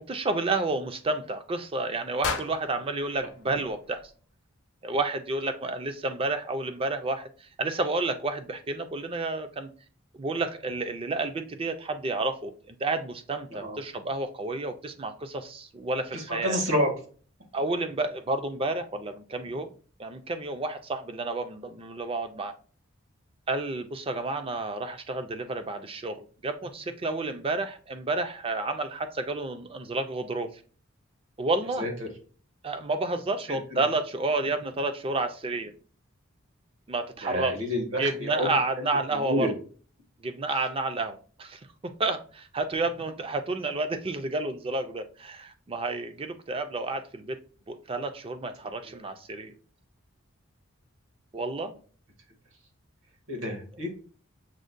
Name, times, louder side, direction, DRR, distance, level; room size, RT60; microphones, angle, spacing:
voice 1, 0.0-4.0 4.8-9.7 10.2-16.6 17.5-19.7 20.0-22.5 23.5-30.5 31.4-31.9 32.6-35.7 36.9-37.5 38.0-39.5 40.2-41.6 42.0-47.4 47.7-49.5 51.3-51.7, right 2 dB, 25° right, 0.4 m, -30 dB
sound 1, 2.2-4.4, left 4 dB, 60° left, 0.6 m, -36 dB
voice 2, 16.1-16.9 31.8-31.9 33.5-33.8 37.2-38.5 38.8-38.9 39.2-39.5 53.3-53.9, equal, 75° right, 1.3 m, -28 dB
6.2 x 2.1 x 2.5 m
head